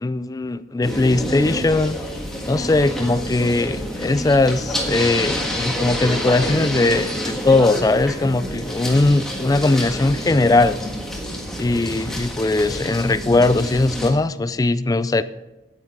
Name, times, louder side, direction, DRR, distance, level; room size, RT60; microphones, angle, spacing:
voice 1, 0.0-2.0 2.4-10.8 11.6-15.2, left 2 dB, 20° left, 14 dB, 0.3 m, -19 dB
sound 1, 0.8-14.1, equal, 5° left, 1.5 m, -28 dB
sound 2, 3.6-14.5, right 1 dB, 40° right, 1.5 m, -42 dB
9.1 x 8.9 x 4.6 m, 1.0 s
head